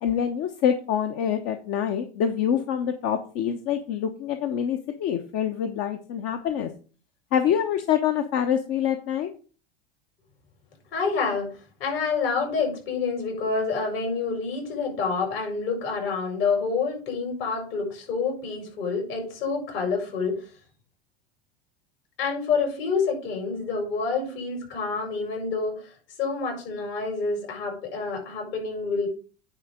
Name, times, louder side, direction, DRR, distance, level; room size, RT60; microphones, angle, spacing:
voice 1, 0.0-6.7 7.3-9.3, left 9 dB, 50° left, 6 dB, 1.0 m, -26 dB
voice 2, 10.9-20.4 22.2-29.1, left 4 dB, 70° left, 1 dB, 5.1 m, -28 dB
9.7 x 3.6 x 6.4 m, 0.38 s
hypercardioid pair, 90°, 30 cm